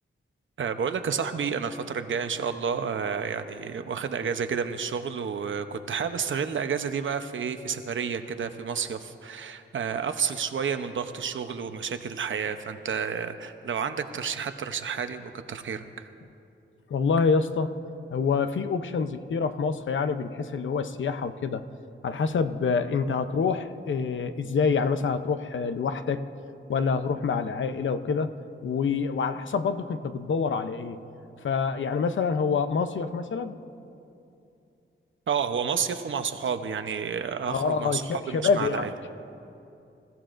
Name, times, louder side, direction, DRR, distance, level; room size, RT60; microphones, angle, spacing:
voice 1, 0.6-16.1 35.3-38.9, right 6 dB, 70° right, 8 dB, 0.8 m, -30 dB
voice 2, 16.9-17.7 18.1-21.6 22.0-26.2 26.7-28.3 28.6-31.0 31.4-33.6 37.5-39.1, left 5 dB, 70° left, 9 dB, 0.7 m, -26 dB
27.0 x 15.5 x 2.6 m, 2.7 s
wide cardioid pair, 125°, 21 cm